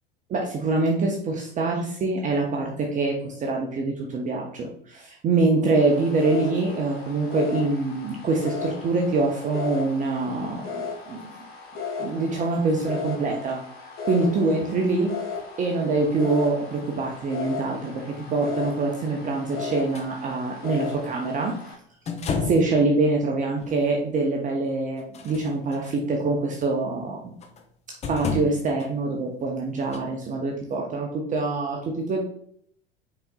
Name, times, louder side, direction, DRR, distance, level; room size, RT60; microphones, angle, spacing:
voice 1, 0.3-11.2 12.0-13.6 14.0-15.2 15.6-21.7 22.4-27.3 28.1-32.2, right 3 dB, 25° right, 0 dB, 0.7 m, -25 dB
sound 1, 5.7-21.7, left 5 dB, 45° left, 1.5 m, -36 dB
sound 2, 19.9-20.1 22.1-22.7 23.6-23.7 25.0-25.9 27.4-27.6 28.0-28.9 29.9-30.0, left 4 dB, 20° left, 0.6 m, -30 dB
5.5 x 4.0 x 2.3 m, 0.65 s
figure-of-eight pair, 75°, 30 cm